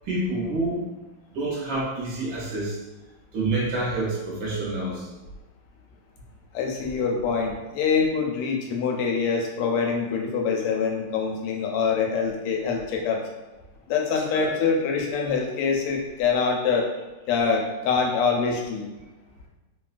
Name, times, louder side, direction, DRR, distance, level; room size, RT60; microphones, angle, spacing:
voice 1, 0.0-0.8 1.3-2.8 3.3-5.1 14.3-14.5, right 2 dB, 65° right, -5 dB, 1.4 m, -28 dB
voice 2, 6.5-13.2 13.9-16.9 17.3-18.9, left 5 dB, 90° left, 1 dB, 1.5 m, -25 dB
3.6 x 2.2 x 2.4 m, 1.1 s
omnidirectional pair, 2.4 m